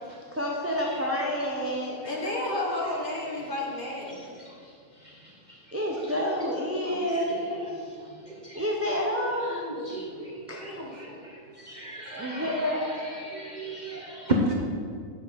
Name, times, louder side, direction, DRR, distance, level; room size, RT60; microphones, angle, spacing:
voice 1, 0.3-2.3 5.7-7.6 8.5-9.7 10.5-10.7 12.2-12.8, equal, 15° right, -2 dB, 0.6 m, -29 dB
voice 2, 2.0-4.3 10.6-10.9, left 1 dB, 40° left, -3 dB, 1.5 m, -32 dB
voice 3, 8.3-8.6 9.5-12.3 13.1-14.5, right 1 dB, 40° right, -2 dB, 0.9 m, -33 dB
7.6 x 6.7 x 5.3 m, 2.2 s
omnidirectional pair, 1.5 m